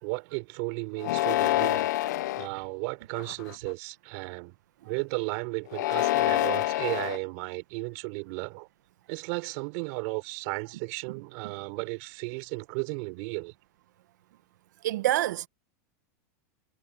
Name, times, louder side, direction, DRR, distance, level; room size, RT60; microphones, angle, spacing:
voice 1, 0.0-1.9 2.3-4.5 4.8-8.7 9.1-13.5, right 29 dB, 45° right, 3.9 m, -34 dB
sound 1, 1.0-2.5 3.2-3.7 5.7-7.2, left 16 dB, 75° left, 0.5 m, -26 dB
voice 2, 14.8-15.5, right 14 dB, 80° right, 1.1 m, -26 dB
supercardioid pair, 175°, 9 cm